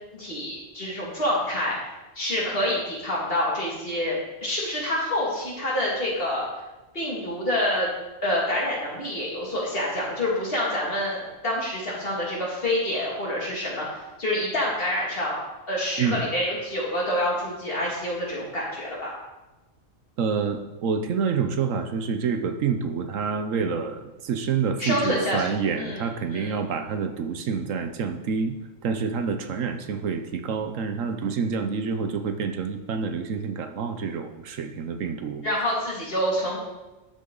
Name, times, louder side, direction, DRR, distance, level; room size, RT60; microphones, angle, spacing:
voice 1, 0.1-1.8 2.1-6.5 6.9-7.9 8.2-15.4 15.7-19.1 24.8-25.5 25.8-26.0 26.3-26.5 35.4-36.6, left 1 dB, 45° left, -5 dB, 2.9 m, -27 dB
voice 2, 16.0-16.3 20.2-28.6 28.8-35.8, right 5 dB, 75° right, 7 dB, 1.2 m, -28 dB
12.0 x 6.8 x 3.9 m, 1.1 s
omnidirectional pair, 1.3 m